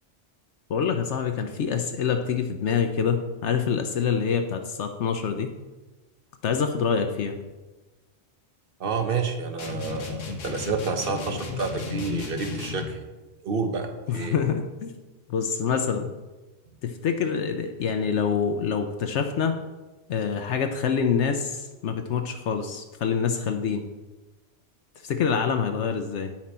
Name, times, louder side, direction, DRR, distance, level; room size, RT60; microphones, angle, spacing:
voice 1, 0.7-5.5 6.4-7.4 14.1-14.9 15.3-16.1 16.8-19.6 20.1-23.9 25.0-26.3, left 6 dB, 70° left, 5 dB, 0.9 m, -26 dB
voice 2, 8.8-13.0 13.4-14.3, right 5 dB, 50° right, 6 dB, 1.1 m, -29 dB
sound 1, 9.6-13.0, left 5 dB, 90° left, 1.4 m, -34 dB
9.3 x 6.0 x 4.2 m, 1.2 s
omnidirectional pair, 1.2 m